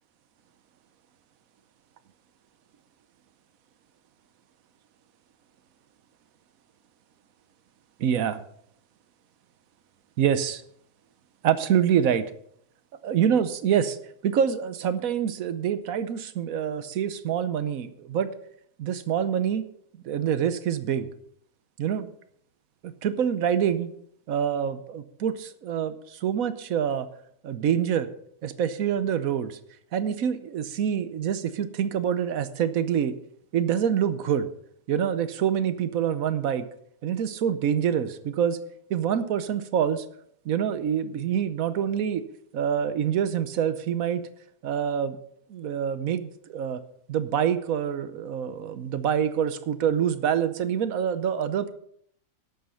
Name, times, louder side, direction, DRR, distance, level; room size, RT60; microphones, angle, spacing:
voice 1, 8.0-8.4 10.2-10.6 11.4-12.3 13.0-14.0 14.2-18.3 18.8-19.6 20.0-21.1 21.8-22.1 22.8-23.9 24.3-27.1 27.4-28.1 28.4-29.6 29.9-33.1 33.5-34.5 34.9-36.7 37.0-38.6 38.9-40.0 40.4-42.2 42.5-44.2 44.6-45.2 45.5-46.8 47.1-51.7, right 8 dB, 70° right, 13 dB, 1.2 m, -26 dB
11.5 x 8.1 x 5.6 m, 0.67 s
omnidirectional pair, 1.6 m